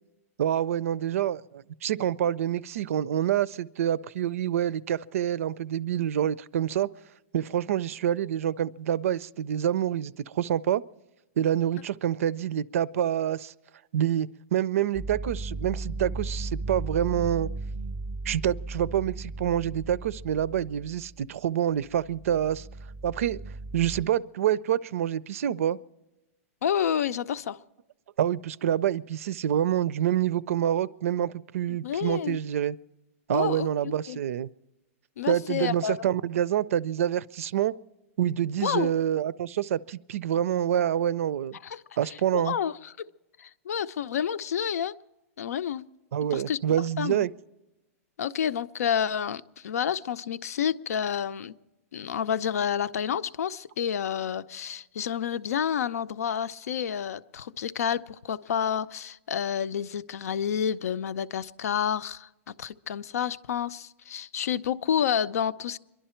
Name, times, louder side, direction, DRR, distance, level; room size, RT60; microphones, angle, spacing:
voice 1, 0.4-6.9 7.3-10.8 11.4-13.5 13.9-17.5 18.3-22.7 23.0-23.4 23.7-25.8 28.2-32.8 33.3-34.5 35.3-37.7 38.2-41.6 42.0-42.6 46.1-47.3, right 10 dB, 65° right, 0.4 m, -27 dB
sound 1, 14.9-21.3 21.8-24.0, right 2 dB, ahead, 0.6 m, -36 dB
voice 2, 26.6-27.6 31.7-32.4 33.3-34.2 35.2-36.0 38.6-39.0 41.6-41.8 42.1-43.1 43.4-45.0 45.4-45.9 46.3-46.6 47.0-47.3 48.2-51.6 51.9-65.8, left 8 dB, 85° left, 0.6 m, -29 dB
26.0 x 11.5 x 4.4 m
supercardioid pair, 170°, 8 cm